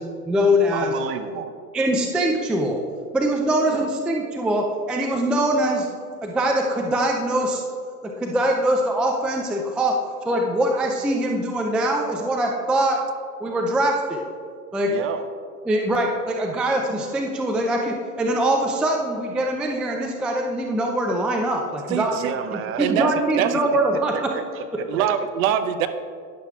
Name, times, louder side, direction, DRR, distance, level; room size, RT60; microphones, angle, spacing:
voice 1, 0.0-0.9 1.7-2.8 3.1-5.9 6.2-7.6 8.0-9.9 10.2-13.0 13.4-14.2 14.7-15.0 15.7-22.2 22.5-24.3, right 1 dB, ahead, 1 dB, 0.3 m, -23 dB
voice 2, 0.7-1.5 3.7-3.9 14.8-15.3 22.1-22.9 23.3-23.6 23.9-25.2, right 8 dB, 30° right, 9 dB, 0.7 m, -32 dB
voice 3, 21.9-22.3 22.8-23.1 23.4-23.5 24.9-25.9, right 9 dB, 60° right, 10 dB, 0.8 m, -23 dB
12.5 x 10.5 x 2.4 m, 2.1 s
hypercardioid pair, 100°, 46 cm